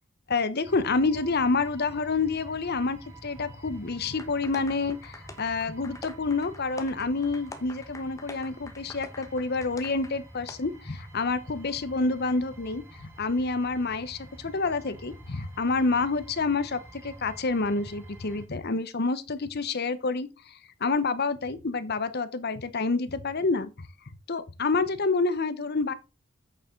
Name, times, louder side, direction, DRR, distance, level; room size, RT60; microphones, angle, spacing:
voice 1, 0.3-20.5 20.8-23.9 24.3-25.9, left 3 dB, 50° left, 0.9 m, -28 dB
sound 1, 0.6-18.4, right 1 dB, 15° right, 4.3 m, -48 dB
sound 2, 4.2-10.1 10.5-10.6, left 2 dB, 15° left, 1.1 m, -44 dB
8.5 x 6.9 x 3.8 m
head